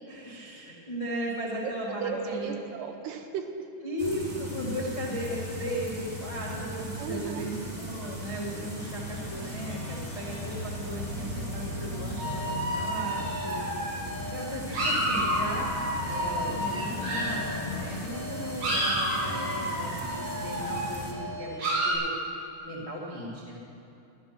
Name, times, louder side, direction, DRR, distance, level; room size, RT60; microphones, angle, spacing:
voice 1, 0.1-2.5 3.8-13.6 14.3-15.7 16.0-22.1 22.6-23.6, equal, 30° left, -5 dB, 0.5 m, -36 dB
voice 2, 2.0-3.5 7.0-7.5 19.3-19.5, right 7 dB, 80° right, 5 dB, 3.2 m, -35 dB
sound 1, 4.0-21.1, equal, 30° right, 0.7 m, -38 dB
sound 2, 8.8-18.8, left 2 dB, 65° left, 3.4 m, -40 dB
sound 3, 12.2-17.6 18.1-21.9, right 1 dB, 60° right, 5.9 m, -30 dB
14.0 x 12.0 x 6.1 m, 2.8 s
omnidirectional pair, 4.9 m